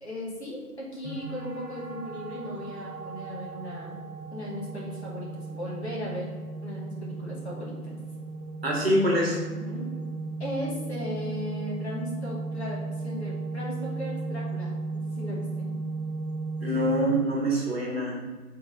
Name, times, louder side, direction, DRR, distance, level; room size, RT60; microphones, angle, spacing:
voice 1, 0.0-4.0 4.3-6.3 6.6-8.0 9.6-9.9 10.4-15.7, left 1 dB, 45° left, -4 dB, 2.1 m, -37 dB
sound 1, 1.0-17.0, right 3 dB, 20° right, 1.1 m, -35 dB
voice 2, 8.6-9.4 16.6-18.2, equal, 40° right, -2 dB, 1.5 m, -25 dB
8.6 x 4.0 x 3.9 m, 1.5 s
figure-of-eight pair, 160°, 47 cm